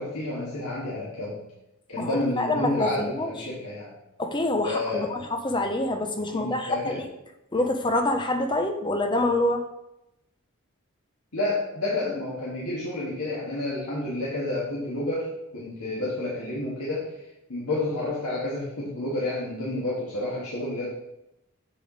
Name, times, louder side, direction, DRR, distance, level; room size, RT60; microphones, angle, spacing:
voice 1, 0.0-1.4 1.9-3.9 4.6-5.1 6.3-7.0 11.3-17.1 17.5-20.9, left 2 dB, 85° left, -7 dB, 1.8 m, -30 dB
voice 2, 2.0-3.3 4.2-7.0 7.5-9.7, left 1 dB, 20° left, 5 dB, 0.7 m, -26 dB
6.8 x 6.7 x 4.0 m, 0.89 s
head